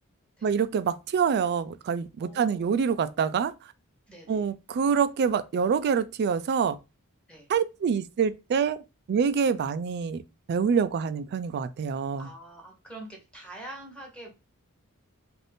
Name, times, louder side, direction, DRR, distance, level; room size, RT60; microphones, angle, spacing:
voice 1, 0.4-3.5 4.3-6.8 7.5-8.8 9.1-10.2 10.5-12.3, right 6 dB, 50° right, 0.3 m, -26 dB
voice 2, 2.2-2.7 4.1-4.5 7.3-7.5 12.2-14.3, right 1 dB, 5° left, 1.0 m, -45 dB
2.6 x 2.5 x 3.4 m
head